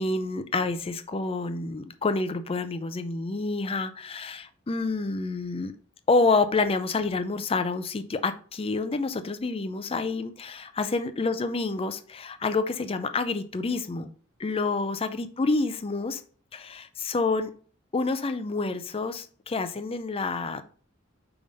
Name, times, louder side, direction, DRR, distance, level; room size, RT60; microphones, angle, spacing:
voice 1, 0.0-5.7 6.1-14.1 14.4-16.2 16.5-17.5 17.9-20.6, left 3 dB, 25° left, 10 dB, 0.4 m, -28 dB
5.2 x 3.5 x 5.3 m, 0.43 s
head